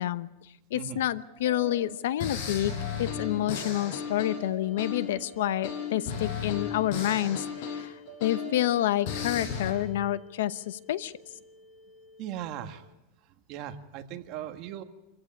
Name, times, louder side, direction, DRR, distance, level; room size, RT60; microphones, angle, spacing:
voice 1, 0.0-2.7 3.0-11.1, left 13 dB, 85° left, 15 dB, 0.9 m, -29 dB
sound 1, 0.8-9.8, right 8 dB, 65° right, 6.9 m, -50 dB
sound 2, 1.6-1.8 2.2-5.2 5.6-8.7 9.1-9.7, left 7 dB, 55° left, 5.8 m, -35 dB
sound 3, 4.6-12.7, left 7 dB, 15° left, 1.8 m, -54 dB
voice 2, 12.2-12.9 13.5-14.8, right 11 dB, 45° right, 6 dB, 1.7 m, -38 dB
26.0 x 15.0 x 8.8 m, 0.98 s
supercardioid pair, 160°, 0 cm